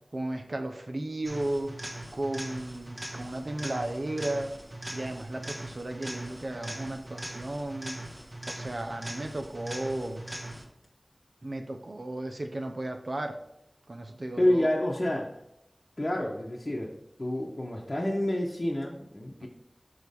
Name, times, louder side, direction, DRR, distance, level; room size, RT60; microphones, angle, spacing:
voice 1, 0.1-1.7 2.1-4.5 4.9-8.0 8.5-10.3 11.4-13.4 13.9-14.7 19.4-19.5, right 1 dB, 60° right, 5 dB, 0.8 m, -34 dB
sound 1, 1.2-10.9 18.8-18.9, right 1 dB, 30° right, 1.5 m, -41 dB
voice 2, 14.4-15.3 16.0-16.9 17.2-19.5, left 1 dB, 45° left, -3 dB, 0.9 m, -28 dB
6.4 x 4.7 x 3.6 m, 0.84 s
wide cardioid pair, 50°, 0 cm